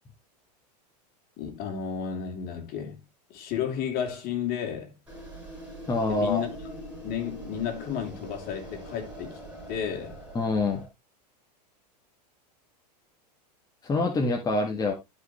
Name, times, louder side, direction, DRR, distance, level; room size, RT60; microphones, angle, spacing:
voice 1, 1.4-3.0 3.3-4.9 6.1-6.5 7.0-9.4 9.7-10.2, left 8 dB, 45° left, 3.3 m, -32 dB
sound 1, 5.1-10.9, equal, 5° right, 6.3 m, -42 dB
voice 2, 5.9-6.4 10.3-10.8 13.8-14.9, left 3 dB, 15° left, 1.6 m, -25 dB
12.5 x 5.5 x 3.1 m
hypercardioid pair, 110°, 21 cm